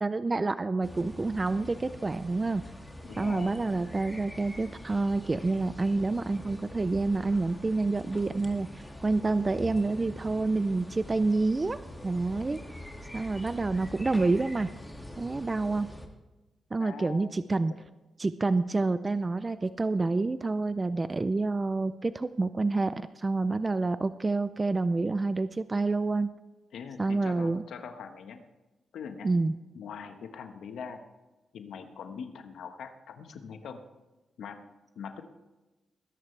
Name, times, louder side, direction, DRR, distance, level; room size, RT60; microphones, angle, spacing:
voice 1, 0.0-2.6 3.2-8.7 9.0-12.6 13.1-14.7 15.2-15.9 16.7-17.7 18.2-26.3 27.0-27.6 29.2-29.5, right 3 dB, 30° right, 13 dB, 0.5 m, -28 dB
sound 1, 0.8-16.1, left 1 dB, 10° left, 2.2 m, -44 dB
voice 2, 3.0-3.7 12.4-12.6 16.8-17.8 26.7-28.4 28.9-29.3 29.7-31.0 31.5-33.8 34.4-34.6 34.9-35.2, left 6 dB, 85° left, 7 dB, 1.3 m, -42 dB
20.0 x 11.0 x 3.3 m, 1.1 s
cardioid pair, 80°, 0 cm